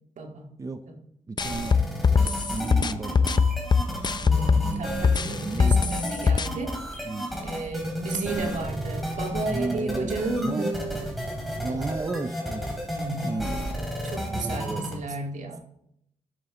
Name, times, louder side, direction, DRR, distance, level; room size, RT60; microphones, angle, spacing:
voice 1, 0.2-0.5 0.9-1.0 4.2-7.1 7.4-12.2 12.9-13.4 14.0-15.6, right 3 dB, 70° right, 3 dB, 2.1 m, -33 dB
voice 2, 1.3-3.3 4.3-5.9 7.0-7.3 9.5-10.1 10.4-10.7 11.6-12.6 13.2-13.6 14.3-15.2, right 3 dB, 25° right, 9 dB, 0.6 m, -34 dB
sound 1, 1.4-4.7 5.0-6.5, left 5 dB, 35° left, 0.5 m, -21 dB
sound 2, 1.4-14.9, equal, ahead, 3.7 m, -33 dB
12.5 x 11.0 x 3.9 m, 0.74 s
cardioid pair, 100°, 13 cm